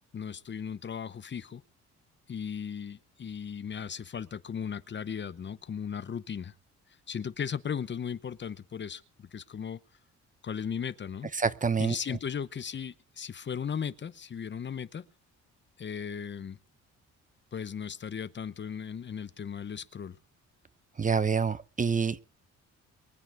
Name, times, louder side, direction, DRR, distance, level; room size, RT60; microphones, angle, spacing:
voice 1, 0.1-1.6 2.3-6.5 7.1-9.8 10.4-11.3 11.8-15.0 15.8-16.6 17.5-20.2, left 7 dB, 35° left, 0.9 m, -36 dB
voice 2, 11.4-11.9 21.0-22.2, right 5 dB, 25° right, 0.8 m, -27 dB
23.5 x 9.1 x 4.8 m
cardioid pair, 90°, 30 cm